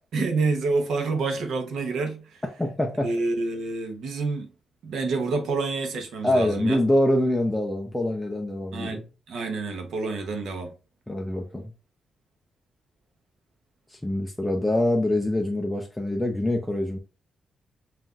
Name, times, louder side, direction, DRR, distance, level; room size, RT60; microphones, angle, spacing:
voice 1, 0.1-2.4 3.0-4.5 4.8-6.8 8.7-9.0 9.3-10.7, right 3 dB, 80° right, 0.9 m, -28 dB
voice 2, 2.6-3.1 6.2-9.0 11.1-11.7 13.9-17.0, left 1 dB, 5° left, 0.4 m, -25 dB
5.6 x 2.6 x 2.4 m
wide cardioid pair, 165°, 0 cm